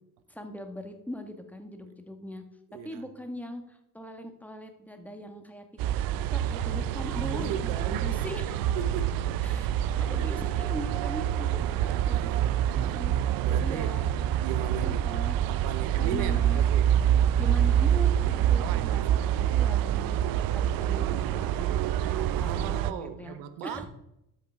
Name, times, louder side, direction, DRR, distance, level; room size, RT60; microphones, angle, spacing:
voice 1, 0.3-2.4 2.8-5.6 6.3-8.6 9.4-9.7 9.9-12.3 12.7-13.1 13.4-14.1 14.8-15.4 16.0-16.6 17.3-23.9, equal, 5° left, 1.5 m, -40 dB
voice 2, 2.7-3.0 7.2-8.2 8.8-9.4 10.2-10.4 11.6-13.1 13.4-14.0 14.4-15.1 15.5-16.9 18.9-19.4 22.3-23.9, right 9 dB, 70° right, 0.9 m, -38 dB
sound 1, 5.8-22.9, right 10 dB, 50° right, 0.5 m, -26 dB
12.5 x 5.1 x 3.5 m
hypercardioid pair, 55°, 45 cm